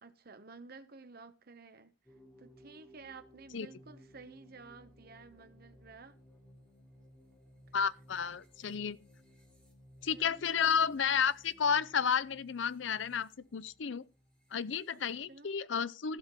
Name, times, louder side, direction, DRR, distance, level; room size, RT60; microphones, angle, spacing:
voice 1, 0.0-1.9 2.4-6.2 10.1-10.6 14.9-15.0 15.3-15.5, right 4 dB, 50° right, 1.0 m, -53 dB
sound 1, 2.0-15.6, equal, 5° left, 3.2 m, -60 dB
voice 2, 7.7-9.0 10.0-14.0 14.5-16.2, left 7 dB, 70° left, 0.6 m, -32 dB
15.0 x 5.8 x 5.2 m
head